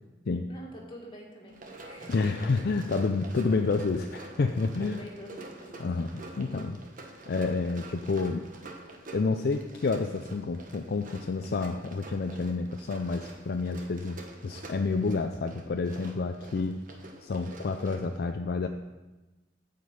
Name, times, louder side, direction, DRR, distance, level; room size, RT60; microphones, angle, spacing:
voice 1, 0.5-1.6 1.9-2.1 4.8-5.8 7.9-8.0, equal, 25° left, -2 dB, 2.1 m, -46 dB
Run, 1.5-18.2, right 2 dB, 45° right, 1.3 m, -47 dB
voice 2, 2.1-5.0 5.8-6.8 7.3-8.5 9.1-16.8 17.2-18.7, left 3 dB, 55° left, 6 dB, 0.4 m, -29 dB
9.5 x 5.2 x 7.8 m, 1.2 s
head